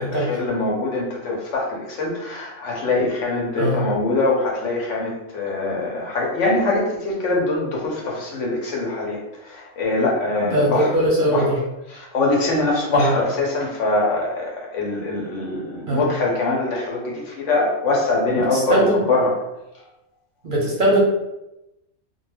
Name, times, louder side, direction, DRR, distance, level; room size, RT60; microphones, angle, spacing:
voice 1, 0.0-9.2 9.5-10.9 11.3-11.5 11.9-19.3, left 2 dB, 75° left, -2 dB, 1.0 m, -23 dB
voice 2, 10.4-11.6 12.9-13.1 15.9-16.0 18.5-19.0 20.4-21.0, right 1 dB, 55° right, -4 dB, 0.6 m, -20 dB
2.3 x 2.2 x 3.2 m, 0.92 s
omnidirectional pair, 1.3 m